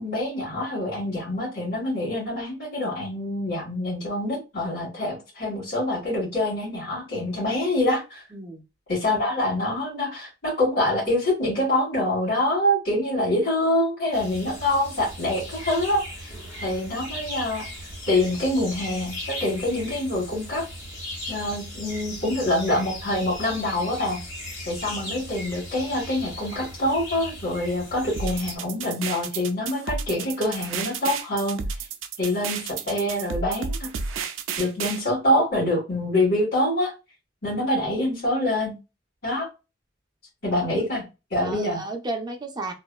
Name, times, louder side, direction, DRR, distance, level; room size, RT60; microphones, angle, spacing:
voice 1, 0.0-8.2 8.9-16.3 16.6-20.6 21.3-24.2 24.6-31.6 32.2-33.9 34.6-36.9 37.4-38.7 39.2-39.5 40.4-41.0 41.3-41.8, left 1 dB, 65° left, -9 dB, 1.8 m, -25 dB
voice 2, 8.3-8.6 40.5-40.9 41.4-42.7, right 2 dB, 20° right, 3 dB, 0.5 m, -33 dB
sound 1, 14.1-28.6, left 1 dB, 45° left, 1.7 m, -37 dB
sound 2, 28.2-35.0, right 5 dB, 85° right, 0.4 m, -32 dB
3.1 x 2.6 x 2.3 m, 0.28 s
head